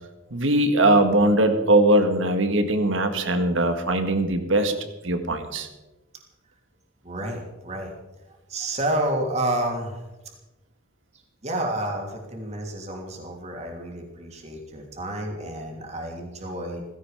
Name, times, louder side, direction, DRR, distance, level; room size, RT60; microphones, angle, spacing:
voice 1, 0.3-4.7 5.0-5.7, right 1 dB, 75° right, 7 dB, 1.9 m, -20 dB
voice 2, 7.0-7.9 8.5-10.0 11.4-16.8, right 1 dB, 35° right, 1 dB, 2.9 m, -30 dB
16.5 x 16.0 x 5.1 m, 1.1 s
head